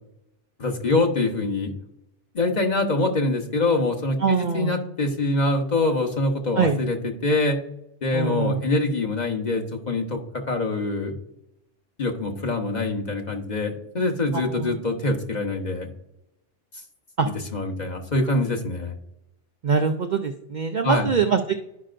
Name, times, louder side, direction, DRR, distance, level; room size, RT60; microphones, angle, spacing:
voice 1, 0.6-1.7 2.3-7.0 7.2-7.6 8.0-10.2 10.5-11.1 12.0-15.9 17.2-18.9 20.8-21.1, left 2 dB, 40° left, 3 dB, 1.1 m, -24 dB
voice 2, 4.2-4.8 6.6-6.8 8.1-8.6 14.3-14.8 17.2-17.3 19.6-21.5, right 6 dB, 55° right, 5 dB, 0.5 m, -23 dB
11.5 x 5.5 x 2.5 m, 0.83 s
omnidirectional pair, 1.2 m